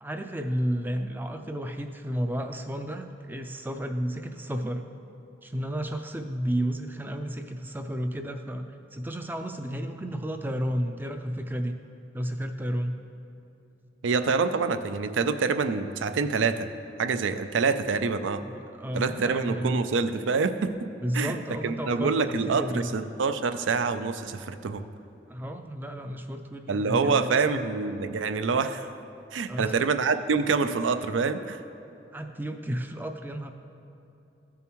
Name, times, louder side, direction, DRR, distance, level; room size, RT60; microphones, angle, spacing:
voice 1, 0.0-4.8 5.4-11.8 12.1-13.0 18.4-19.8 21.0-22.9 25.3-27.6 29.5-29.8 32.1-33.5, equal, 10° right, 7 dB, 0.3 m, -32 dB
voice 2, 14.0-16.7 17.0-18.4 18.9-20.9 21.1-21.4 21.6-24.8 26.7-28.9 29.3-31.6, right 4 dB, 90° right, 10 dB, 0.4 m, -26 dB
14.0 x 6.9 x 3.1 m, 2.8 s
head